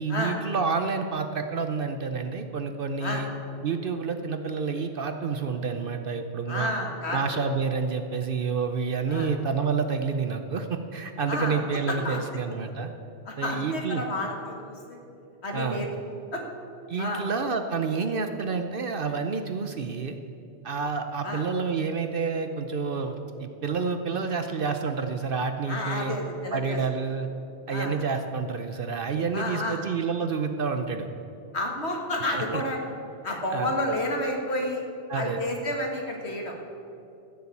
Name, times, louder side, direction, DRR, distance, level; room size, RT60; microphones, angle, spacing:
voice 1, 0.0-3.3 3.6-6.7 7.1-12.9 13.4-14.0 15.5-15.9 16.9-20.2 20.6-26.2 26.5-27.3 27.7-31.1 32.3-32.6 33.3-33.7 35.1-35.4, right 5 dB, 55° right, 7 dB, 0.8 m, -29 dB
voice 2, 6.5-7.2 9.1-9.3 11.3-11.6 11.9-12.2 13.3-15.0 15.4-15.9 16.3-16.4 17.0-17.3 21.2-21.4 25.7-26.8 27.7-27.9 29.3-29.8 31.5-32.9 33.2-34.8 35.1-36.6, left 1 dB, 65° left, 1 dB, 1.9 m, -30 dB
14.5 x 6.9 x 8.3 m, 2.7 s
omnidirectional pair, 1.2 m